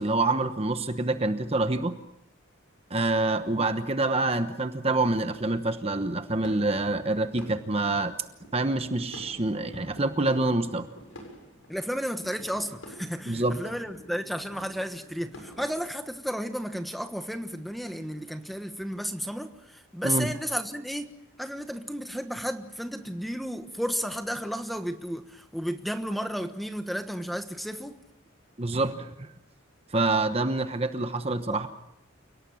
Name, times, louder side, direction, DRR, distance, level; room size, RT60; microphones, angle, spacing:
voice 1, 0.0-2.0 2.9-8.1 8.5-10.9 13.3-13.6 20.0-20.3 28.6-29.3 29.9-31.7, right 2 dB, 30° right, 1.1 m, -26 dB
sound 1, 6.1-15.7, equal, 75° left, 7.2 m, -48 dB
voice 2, 11.7-21.1 21.4-28.0, equal, ahead, 1.2 m, -33 dB
29.5 x 18.0 x 7.2 m
head